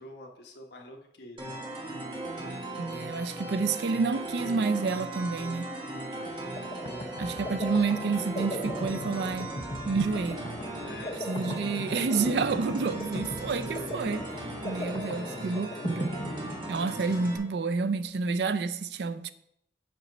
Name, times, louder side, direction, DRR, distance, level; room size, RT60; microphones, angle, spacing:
voice 1, 0.0-1.5 6.1-6.7 10.8-11.2 13.6-13.9 14.6-15.6 17.0-17.3, left 1 dB, 75° left, 1.1 m, -47 dB
sound 1, 1.4-17.4, right 1 dB, 25° right, 1.3 m, -38 dB
voice 2, 2.8-5.7 7.2-9.5 9.8-10.5 11.3-16.1 16.7-19.3, right 4 dB, 75° right, 0.4 m, -29 dB
sound 2, 6.3-17.1, left 1 dB, 30° left, 0.7 m, -38 dB
7.7 x 3.9 x 5.3 m
head